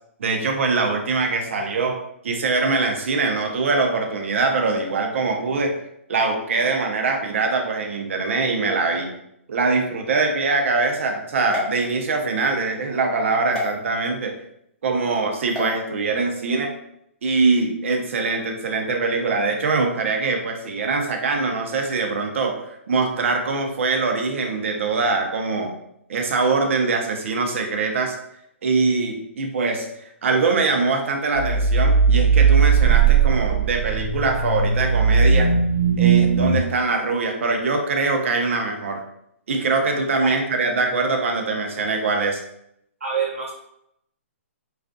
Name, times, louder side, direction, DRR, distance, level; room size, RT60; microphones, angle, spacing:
voice 1, 0.2-2.0 2.2-5.8 6.1-9.1 9.5-14.4 14.8-16.7 17.2-25.7 26.1-28.1 28.6-35.6 36.0-39.0 39.5-42.4, right 3 dB, 65° right, 3 dB, 0.6 m, -23 dB
sound 1, 11.5-12.5 13.5-13.7 15.5-15.7, left 2 dB, 5° left, 0.7 m, -31 dB
sound 2, 31.3-36.6, right 6 dB, 80° left, 0.6 m, -18 dB
voice 2, 43.0-43.5, right 6 dB, 85° right, -3 dB, 1.0 m, -27 dB
2.4 x 2.3 x 2.5 m, 0.76 s
hypercardioid pair, 140°, 7 cm